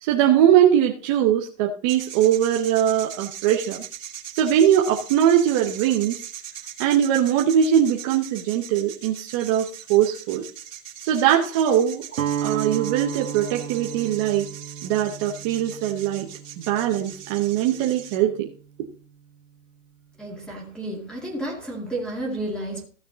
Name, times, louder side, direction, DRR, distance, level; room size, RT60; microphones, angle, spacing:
voice 1, 0.0-3.8 4.3-6.2 6.8-10.4 11.0-12.0 12.4-14.5 14.8-16.3 16.7-18.5, right 10 dB, 20° right, 0 dB, 0.7 m, -21 dB
sound 1, 1.9-18.2, right 9 dB, 70° right, 2.6 m, -40 dB
Guitar, 12.1-18.2, right 9 dB, 85° right, 1.2 m, -33 dB
voice 2, 20.2-22.8, right 1 dB, ahead, -1 dB, 2.1 m, -31 dB
15.0 x 6.4 x 3.9 m, 0.38 s
hypercardioid pair, 160°, 40 cm